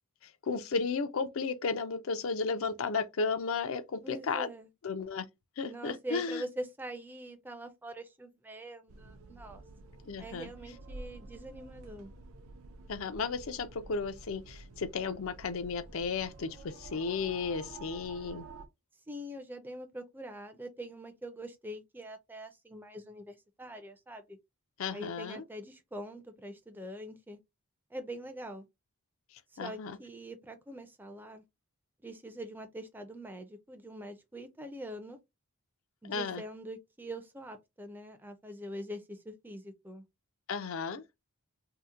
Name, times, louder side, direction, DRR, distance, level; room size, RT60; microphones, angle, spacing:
voice 1, 0.2-4.5 4.8-5.3 5.6-6.4 10.1-10.5 12.9-18.5 24.8-25.4 29.6-30.0 36.1-36.4 40.5-41.1, left 5 dB, 70° left, 0.5 m, -34 dB
voice 2, 4.0-4.7 5.6-9.6 10.2-12.1 19.1-24.4 24.9-27.4 27.9-28.6 29.6-31.4 32.0-35.2 36.0-40.0, right 1 dB, 10° right, 0.4 m, -44 dB
sound 1, 8.9-18.7, right 3 dB, 75° right, 0.5 m, -50 dB
2.8 x 2.1 x 3.6 m
head